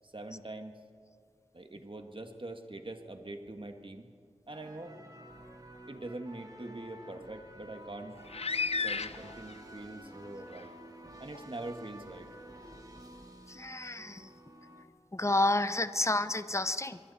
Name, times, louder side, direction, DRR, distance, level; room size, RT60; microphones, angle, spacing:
voice 1, 0.0-0.8 1.5-4.1 4.5-5.0 5.9-8.3 8.7-10.7 11.2-12.3, right 2 dB, 45° right, 5 dB, 1.9 m, -43 dB
sound 1, 4.5-14.8, right 1 dB, 30° right, 2.6 m, -51 dB
sound 2, 8.2-9.6 10.5-10.6 11.3-11.4, left 4 dB, 60° left, 0.5 m, -33 dB
voice 2, 13.5-14.3 15.1-17.0, left 2 dB, 25° left, 12 dB, 0.8 m, -30 dB
26.5 x 23.0 x 4.3 m, 2.1 s
wide cardioid pair, 45°, 12 cm